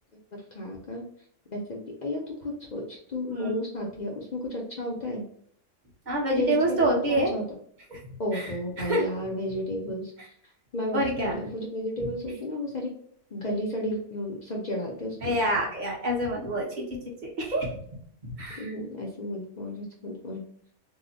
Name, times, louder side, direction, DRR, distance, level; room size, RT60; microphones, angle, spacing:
voice 1, 0.3-1.0 1.5-5.2 6.4-7.4 8.2-10.3 10.7-11.0 11.3-12.9 13.3-15.4 18.6-20.4, left 1 dB, 55° left, -2 dB, 0.5 m, -33 dB
voice 2, 6.1-7.3 7.9-9.0 10.9-11.4 15.2-17.8 18.2-18.7, right 1 dB, 40° right, -2 dB, 0.8 m, -27 dB
2.8 x 2.1 x 3.9 m, 0.64 s
omnidirectional pair, 1.5 m